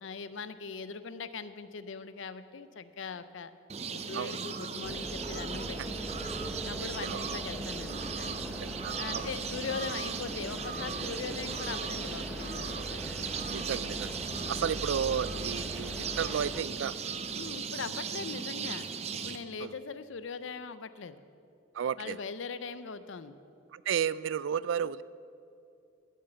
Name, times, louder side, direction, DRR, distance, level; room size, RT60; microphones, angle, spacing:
voice 1, 0.0-3.5 3.8-6.0 6.6-8.4 9.0-13.0 14.4-14.8 17.3-18.9 19.2-21.2 22.0-23.4, left 5 dB, 85° left, 13 dB, 0.6 m, -41 dB
sound 1, 3.7-19.4, right 6 dB, 35° right, 0.5 m, -37 dB
sound 2, 4.8-16.6, equal, ahead, 1.0 m, -41 dB
voice 2, 8.6-9.3 13.5-14.2 14.5-17.0 19.6-19.7 21.7-22.2 23.7-25.0, right 8 dB, 80° right, 18 dB, 0.3 m, -33 dB
13.5 x 6.6 x 8.1 m, 2.5 s
head